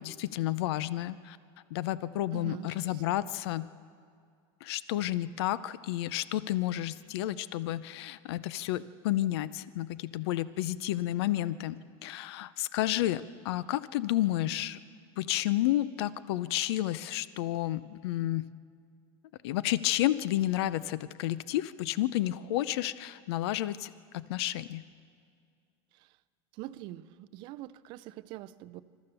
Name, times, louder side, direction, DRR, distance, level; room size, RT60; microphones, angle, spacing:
voice 1, 0.0-1.4 1.7-3.7 4.6-14.8 15.2-18.5 19.4-24.8, left 14 dB, 70° left, 16 dB, 0.6 m, -31 dB
voice 2, 2.3-3.3 25.9-26.2 26.5-28.8, right 14 dB, 35° right, 15 dB, 0.5 m, -44 dB
27.5 x 13.5 x 6.9 m, 2.2 s
supercardioid pair, 180°, 14 cm